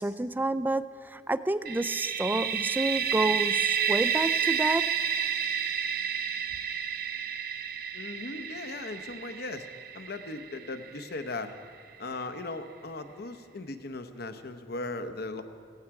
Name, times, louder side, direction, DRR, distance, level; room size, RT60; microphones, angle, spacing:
voice 1, 0.0-4.9, right 2 dB, 10° right, 14 dB, 0.3 m, -29 dB
sound 1, 1.6-11.3, right 8 dB, 55° right, 0.7 m, -30 dB
voice 2, 7.9-9.7 9.9-11.5 12.0-15.4, left 2 dB, 60° left, 9 dB, 0.8 m, -38 dB
16.0 x 15.0 x 4.8 m, 2.2 s
head